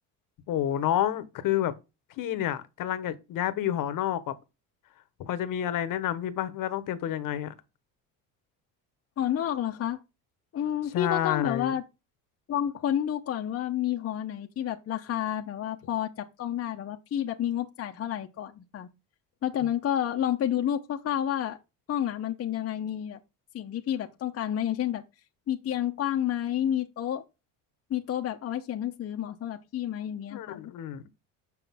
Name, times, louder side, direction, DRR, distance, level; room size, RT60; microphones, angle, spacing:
voice 1, 0.5-1.7 2.2-4.3 5.2-7.5 10.9-11.7 30.3-31.1, left 11 dB, 55° left, 1.1 m, -29 dB
voice 2, 9.2-10.0 10.5-11.8 12.5-18.9 19.4-21.6 21.9-23.2 23.5-25.0 25.5-27.2 27.9-30.7, left 10 dB, 35° left, 0.8 m, -30 dB
6.8 x 5.9 x 3.5 m
cardioid pair, 105°, 39 cm